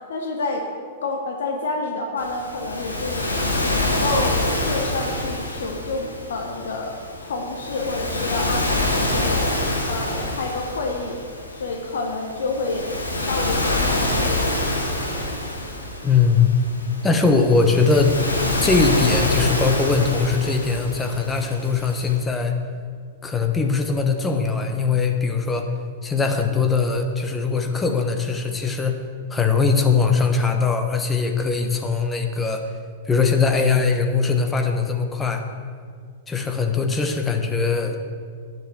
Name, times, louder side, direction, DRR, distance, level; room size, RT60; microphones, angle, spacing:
voice 1, 0.1-0.6 1.0-3.3 3.6-4.4 4.7-7.0 7.2-9.5 9.9-11.1 11.5-12.9 13.2-14.6, left 3 dB, 65° left, 2 dB, 1.2 m, -28 dB
Waves surf, 2.2-22.2, left 1 dB, 85° left, 1.8 m, -26 dB
voice 2, 16.0-16.5 17.0-18.2 18.6-22.6 23.2-25.7 26.0-29.0 29.3-32.6 33.0-35.4 36.3-38.0, left 4 dB, 15° left, 4 dB, 1.2 m, -21 dB
10.5 x 6.8 x 6.5 m, 2.1 s
figure-of-eight pair, 100°, 0 cm